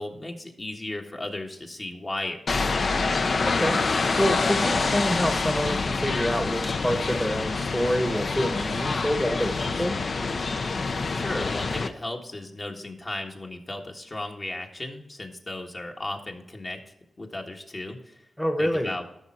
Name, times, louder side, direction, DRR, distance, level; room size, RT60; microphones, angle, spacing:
voice 1, 0.0-2.8 11.1-18.2 18.6-19.0, left 2 dB, 40° left, 1 dB, 1.5 m, -35 dB
sound 1, 2.5-11.9, left 4 dB, 60° left, 0.6 m, -26 dB
voice 2, 3.4-3.8 4.2-10.0 18.4-18.9, equal, 10° left, 5 dB, 1.1 m, -27 dB
12.0 x 6.3 x 4.3 m, 0.83 s
cardioid pair, 65°, 0 cm